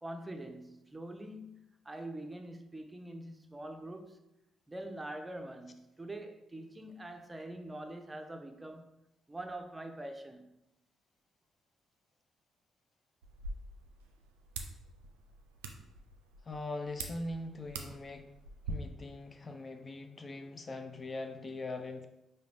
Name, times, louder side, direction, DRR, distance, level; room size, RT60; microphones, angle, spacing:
voice 1, 0.0-4.2 4.7-8.9 9.3-10.6, right 1 dB, 20° right, 0.6 m, -44 dB
sound 1, 13.2-18.7, right 3 dB, 85° right, 0.3 m, -46 dB
voice 2, 16.5-18.3 18.7-22.1, left 2 dB, 35° left, 0.4 m, -41 dB
4.9 x 2.8 x 3.4 m
hypercardioid pair, 45°, 0 cm